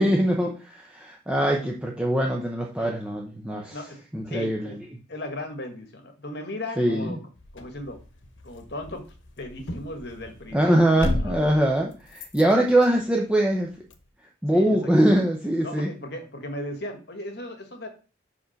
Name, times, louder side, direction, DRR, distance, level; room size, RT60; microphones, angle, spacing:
voice 1, 0.0-3.8 4.1-4.6 6.8-7.2 10.5-13.7 14.4-15.9, right 1 dB, 5° right, 0 dB, 0.8 m, -22 dB
voice 2, 3.6-4.0 4.3-4.8 5.1-7.2 7.5-8.0 8.4-9.0 9.4-11.4 14.5-14.9 15.6-17.9, left 1 dB, 60° left, 6 dB, 1.6 m, -37 dB
sound 1, 7.3-14.1, left 1 dB, 80° left, 1.1 m, -35 dB
5.4 x 4.9 x 6.4 m, 0.35 s
head